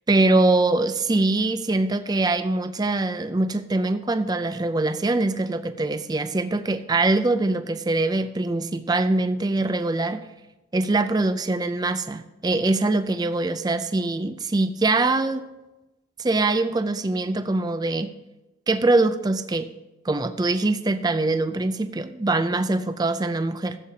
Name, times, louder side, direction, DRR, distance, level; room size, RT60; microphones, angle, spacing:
voice 1, 0.1-10.2 10.7-15.4 16.2-18.1 18.7-19.7 20.0-23.8, right 2 dB, 20° right, 11 dB, 0.4 m, -23 dB
15.0 x 8.1 x 2.8 m, 1.0 s
head